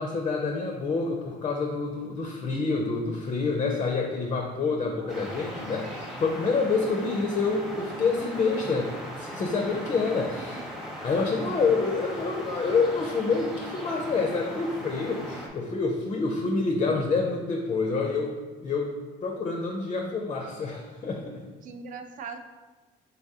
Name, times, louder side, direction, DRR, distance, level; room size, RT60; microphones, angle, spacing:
voice 1, 0.0-10.6 11.0-19.0 19.2-21.4, left 4 dB, 30° left, 2 dB, 0.4 m, -27 dB
voice 2, 4.7-5.7 10.0-10.6 21.6-22.4, right 5 dB, 50° right, 7 dB, 0.4 m, -43 dB
sound 1, 5.1-15.5, equal, ahead, 0.7 m, -38 dB
4.0 x 3.6 x 2.7 m, 1.3 s
cardioid pair, 110°, 17 cm